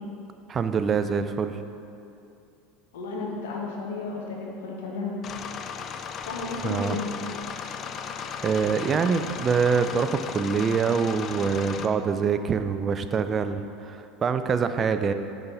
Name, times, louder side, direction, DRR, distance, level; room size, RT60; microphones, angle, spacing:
voice 1, 0.5-1.6 6.6-7.0 8.4-15.1, right 6 dB, 30° right, 10 dB, 0.4 m, -25 dB
voice 2, 2.9-5.2 6.2-7.2, left 3 dB, 85° left, -2 dB, 1.1 m, -33 dB
sound 1, 5.2-11.9, left 6 dB, 40° left, 0.3 m, -36 dB
5.8 x 4.1 x 5.4 m, 2.7 s
supercardioid pair, 100°, 0 cm